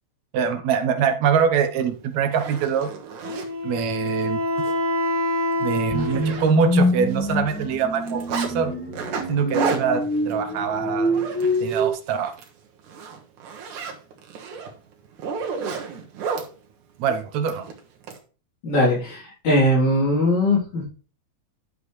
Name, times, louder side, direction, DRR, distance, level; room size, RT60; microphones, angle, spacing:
voice 1, 0.3-2.9 3.6-4.4 5.6-8.2 8.5-8.7 9.3-11.1 11.6-12.3 17.0-17.7, right 7 dB, 70° right, 7 dB, 2.2 m, -23 dB
Zipper (clothing), 1.7-1.8 2.2-3.5 4.1-4.2 4.6-4.7 5.1-5.2 5.5-6.8 7.1-8.5 8.9-11.9 12.2-12.5 12.8-16.5 17.5-18.2, right 5 dB, 90° right, 2.9 m, -32 dB
Wind instrument woodwind instrument, 3.2-6.8, left 1 dB, 30° right, 2.4 m, -26 dB
sound 1, 5.9-11.9, equal, 5° left, 1.0 m, -25 dB
voice 2, 18.6-20.9, left 1 dB, 70° left, -5 dB, 4.8 m, -20 dB
11.5 x 7.0 x 3.2 m, 0.37 s
omnidirectional pair, 3.4 m